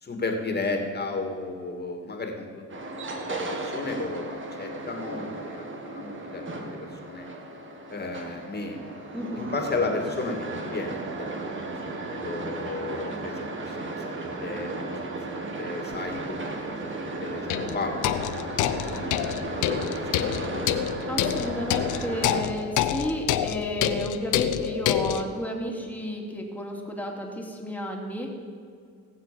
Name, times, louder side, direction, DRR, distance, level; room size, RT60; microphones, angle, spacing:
voice 1, 0.0-2.7 3.3-5.6 5.9-7.2 7.9-13.4 13.7-19.3 19.5-20.6, left 3 dB, 35° left, 3 dB, 2.5 m, -34 dB
sound 1, 2.7-22.4, right 2 dB, 40° right, 2.1 m, -35 dB
voice 2, 9.1-9.5 21.1-28.3, equal, 5° left, 0 dB, 2.9 m, -32 dB
sound 2, 15.9-16.0 17.5-25.3, left 11 dB, 85° left, 0.8 m, -27 dB
18.0 x 7.5 x 7.1 m, 2.2 s
cardioid pair, 90°, 30 cm